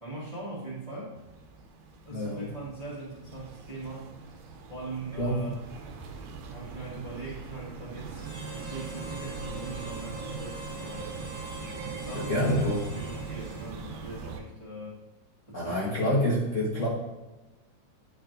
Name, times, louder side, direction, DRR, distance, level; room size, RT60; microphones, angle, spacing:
voice 1, 0.0-1.2 2.0-4.3 4.7-5.6 6.5-11.4 11.8-15.0 15.5-16.2, right 2 dB, 40° right, -7 dB, 0.4 m, -41 dB
sound 1, 1.2-14.4, right 5 dB, 75° right, 1.8 m, -41 dB
voice 2, 2.1-2.5 5.2-5.4 12.1-12.8 15.5-16.9, left 1 dB, 90° left, -7 dB, 0.6 m, -27 dB
Harmonica, 8.2-14.1, right 2 dB, 10° left, 1.7 m, -43 dB
10.5 x 4.5 x 2.6 m, 1.1 s
omnidirectional pair, 3.5 m